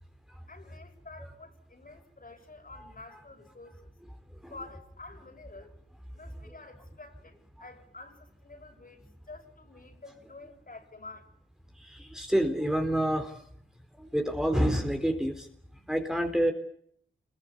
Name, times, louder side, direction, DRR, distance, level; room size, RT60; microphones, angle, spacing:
voice 1, 0.5-3.9 4.5-5.7 6.1-11.3, left 3 dB, 45° left, 4 dB, 6.8 m, -49 dB
voice 2, 11.8-13.4 13.9-15.5 15.9-16.5, equal, 5° right, 4 dB, 3.9 m, -28 dB
26.0 x 22.0 x 8.5 m, 0.67 s
cardioid pair, 50°, 20 cm